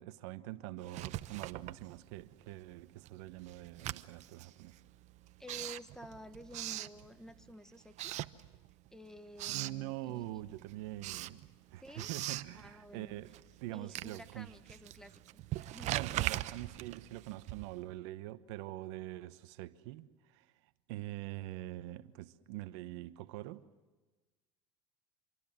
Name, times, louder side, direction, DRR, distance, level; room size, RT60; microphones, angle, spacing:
voice 1, 0.0-4.7 9.5-11.4 11.7-14.5 15.9-23.6, right 16 dB, 70° right, 1.2 m, -44 dB
Writing, 0.8-2.4 2.7-7.5 7.9-8.9 9.2-9.8 10.3-17.9, right 15 dB, 50° right, 0.9 m, -41 dB
voice 2, 5.4-8.1 8.9-10.4 11.1-11.2 11.8-12.1 12.5-13.2 13.7-15.4 15.7-15.9, equal, 5° left, 1.4 m, -51 dB
27.0 x 23.5 x 7.4 m
supercardioid pair, 105°, 15 cm